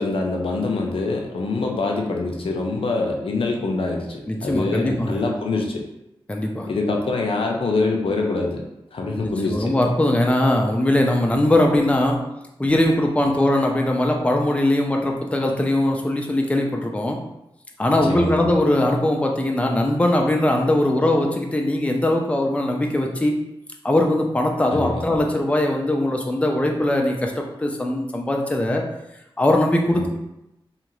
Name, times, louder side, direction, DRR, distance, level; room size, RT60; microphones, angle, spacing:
voice 1, 0.0-5.9 6.7-8.6 8.9-9.7 18.1-18.4 24.7-25.0 29.9-30.1, left 3 dB, 75° left, 1 dB, 0.5 m, -24 dB
voice 2, 4.3-5.2 6.3-6.7 9.2-12.2 12.6-17.2 17.8-23.3 23.8-28.8 29.4-30.1, left 1 dB, 15° left, 1 dB, 0.4 m, -20 dB
2.7 x 2.4 x 3.0 m, 0.89 s
wide cardioid pair, 80°, 9 cm